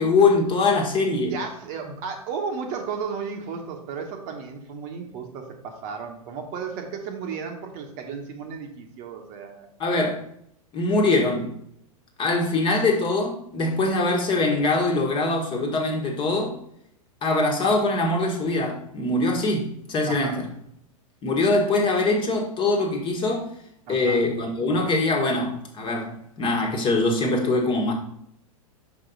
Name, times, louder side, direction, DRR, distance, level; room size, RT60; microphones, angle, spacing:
voice 1, 0.0-1.3 9.8-10.2 10.7-11.5 12.2-16.6 17.2-20.4 21.2-23.5 23.9-27.9, left 2 dB, 25° left, 1.6 m, -23 dB
voice 2, 1.3-9.7 20.1-20.4 23.9-24.2, right 5 dB, 40° right, 1.2 m, -34 dB
5.5 x 5.1 x 4.0 m
hypercardioid pair, 110°, 19 cm